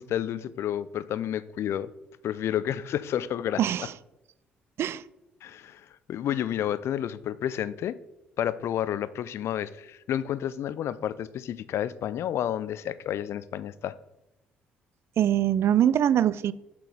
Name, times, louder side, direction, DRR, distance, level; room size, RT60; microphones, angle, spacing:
voice 1, 0.0-1.9 2.2-3.9 5.4-8.0 8.4-14.0, left 10 dB, 55° left, 0.4 m, -30 dB
voice 2, 3.6-3.9 4.8-5.0 15.2-16.5, right 10 dB, 50° right, 0.3 m, -23 dB
7.7 x 4.6 x 5.2 m
figure-of-eight pair, 45°, 5 cm